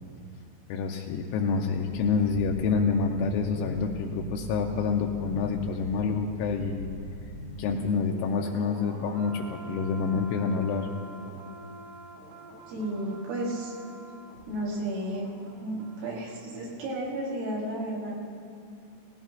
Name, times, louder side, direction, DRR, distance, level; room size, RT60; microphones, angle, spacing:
voice 1, 0.7-6.9 7.6-10.9, left 5 dB, 85° left, 1 dB, 3.0 m, -27 dB
sound 1, 1.5-16.4 16.7-16.9, right 1 dB, 45° right, 2.3 m, -42 dB
voice 2, 12.7-13.7 14.5-15.3 15.6-18.1, right 1 dB, 75° right, -4 dB, 4.3 m, -33 dB
18.0 x 16.5 x 2.8 m, 2.4 s
omnidirectional pair, 5.6 m